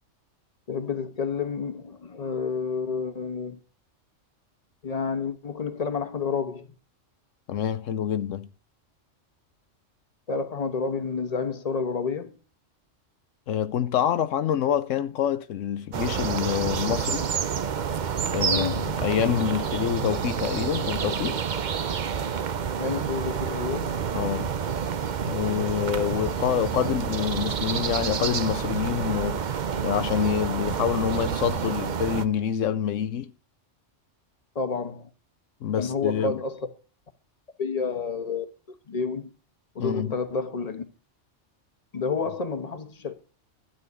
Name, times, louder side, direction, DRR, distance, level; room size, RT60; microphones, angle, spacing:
voice 1, 0.7-3.6 4.8-6.8 10.3-12.4 18.4-19.0 22.8-23.9 34.5-35.1 35.8-36.7 37.6-39.3 39.7-40.8 41.9-43.1, left 5 dB, 30° left, 1.3 m, -30 dB
voice 2, 7.5-8.5 13.5-17.2 18.3-21.4 24.1-24.5 25.3-29.4 29.8-33.3 35.6-36.4 39.8-40.1, left 9 dB, 80° left, 1.0 m, -26 dB
sound 1, 15.9-32.3, right 7 dB, 45° right, 0.7 m, -29 dB
12.5 x 4.2 x 8.2 m
omnidirectional pair, 1.3 m